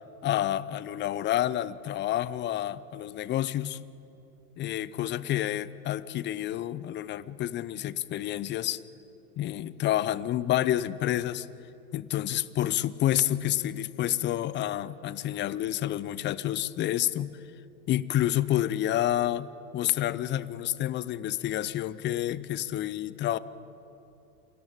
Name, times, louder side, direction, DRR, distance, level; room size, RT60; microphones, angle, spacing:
voice 1, 0.2-3.8 4.6-8.8 9.4-11.5 11.9-17.4 17.9-23.4, left 12 dB, 25° left, 18 dB, 0.5 m, -29 dB
27.5 x 18.5 x 5.1 m, 3.0 s
hypercardioid pair, 90°, 46 cm